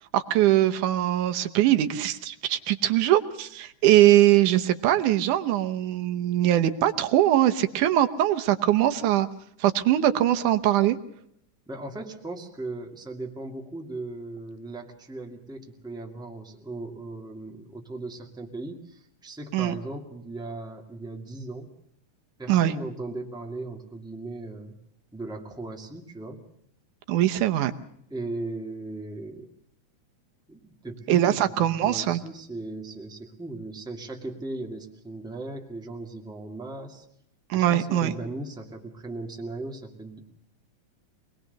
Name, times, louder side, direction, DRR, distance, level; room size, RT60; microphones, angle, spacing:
voice 1, 0.1-9.3 9.6-11.0 19.5-19.7 22.5-22.7 27.1-27.7 31.1-32.2 37.5-38.1, right 13 dB, 85° right, 9 dB, 2.5 m, -22 dB
voice 2, 11.7-21.7 22.4-24.8 25.1-26.4 28.1-29.5 30.5-37.0 37.5-40.2, right 2 dB, ahead, 2 dB, 1.7 m, -37 dB
24.5 x 20.0 x 6.7 m, 0.71 s
omnidirectional pair, 3.5 m